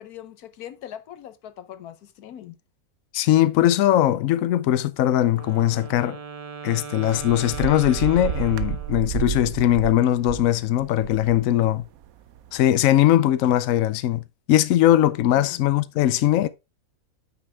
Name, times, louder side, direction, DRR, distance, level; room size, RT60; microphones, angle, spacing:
voice 1, 0.0-2.6 15.4-15.6, left 10 dB, 85° left, 1.3 m, -41 dB
voice 2, 3.1-6.2 6.6-11.8 12.5-16.5, left 13 dB, 70° left, 1.0 m, -20 dB
Wind instrument woodwind instrument, 5.3-9.4, right 6 dB, 45° right, 0.4 m, -39 dB
sound 1, 7.0-10.5 10.8-12.1 12.4-12.8, right 11 dB, 75° right, 1.0 m, -31 dB
9.2 x 6.0 x 3.3 m
omnidirectional pair, 1.5 m